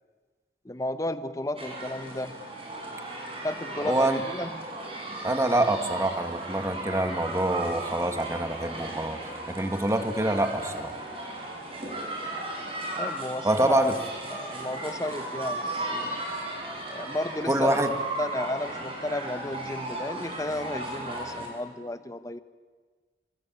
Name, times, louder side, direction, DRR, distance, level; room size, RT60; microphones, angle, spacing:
voice 1, 0.6-2.4 3.4-4.7 13.0-13.9 14.3-16.1 16.9-17.8 18.2-22.4, left 1 dB, 20° left, 11 dB, 1.0 m, -33 dB
sound 1, 1.6-21.5, right 2 dB, 30° right, 6.7 m, -36 dB
voice 2, 3.8-4.2 5.2-9.2 9.5-11.0 13.4-14.0 17.5-17.9, right 1 dB, 15° right, 7 dB, 1.8 m, -26 dB
25.5 x 25.0 x 8.8 m, 1.4 s
head